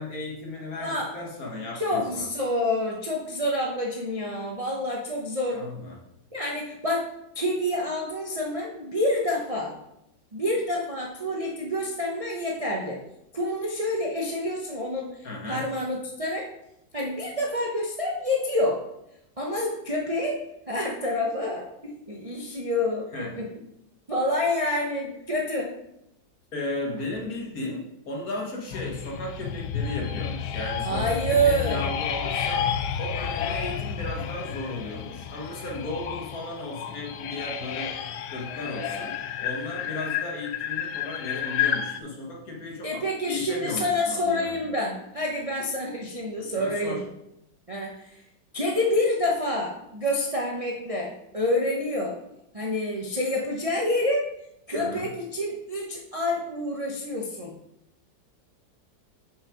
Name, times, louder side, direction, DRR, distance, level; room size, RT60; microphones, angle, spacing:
voice 1, 0.0-2.3 5.5-6.1 15.2-15.7 23.1-23.4 26.5-32.7 33.0-38.0 38.3-44.7 46.5-47.1 54.7-55.1, left 2 dB, 55° left, -1 dB, 1.9 m, -35 dB
voice 2, 0.8-1.1 1.7-5.6 6.3-7.1 7.3-9.8 10.3-13.0 13.3-16.5 16.9-18.8 19.4-20.4 20.7-23.5 24.1-25.7 30.8-31.8 42.8-47.0 47.7-48.2 48.5-52.2 52.5-54.3 54.7-57.6, left 1 dB, 30° right, -2 dB, 0.7 m, -28 dB
sound 1, 28.7-42.0, left 8 dB, 75° left, 1.1 m, -31 dB
6.3 x 5.4 x 5.0 m, 0.83 s
omnidirectional pair, 1.9 m